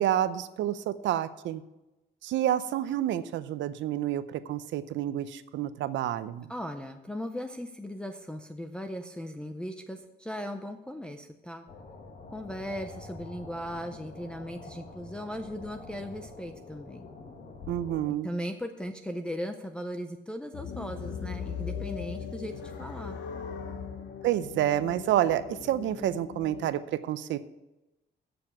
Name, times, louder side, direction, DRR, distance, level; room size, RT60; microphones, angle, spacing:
voice 1, 0.0-1.6 2.2-6.5 17.7-18.3 24.2-27.4, right 12 dB, 75° right, 13 dB, 0.6 m, -29 dB
voice 2, 6.5-11.6 12.3-17.1 18.2-23.2, equal, 5° left, 4 dB, 0.5 m, -38 dB
sound 1, 11.7-18.1, left 3 dB, 40° left, 1.1 m, -46 dB
sound 2, 20.5-26.8, left 7 dB, 75° left, 1.1 m, -39 dB
7.7 x 6.9 x 8.4 m, 0.99 s
cardioid pair, 155°, 19 cm